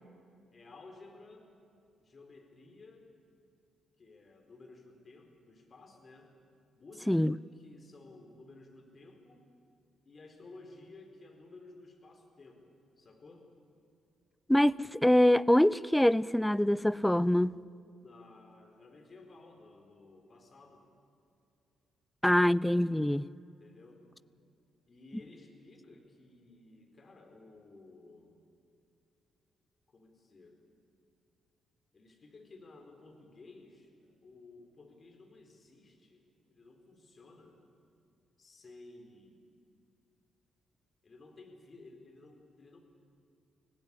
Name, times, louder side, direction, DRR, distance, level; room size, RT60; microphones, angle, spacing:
voice 1, 0.5-1.5 2.0-3.1 4.0-6.3 6.7-9.5 10.1-13.5 18.0-20.9 23.5-24.0 24.9-28.4 29.9-30.6 31.9-33.9 34.2-37.6 38.4-39.5 41.0-42.8, left 3 dB, 45° left, 4.5 m, -55 dB
voice 2, 14.5-17.6 22.2-23.3, left 1 dB, 5° left, 0.5 m, -24 dB
25.5 x 17.5 x 8.5 m
hypercardioid pair, 45°, 0 cm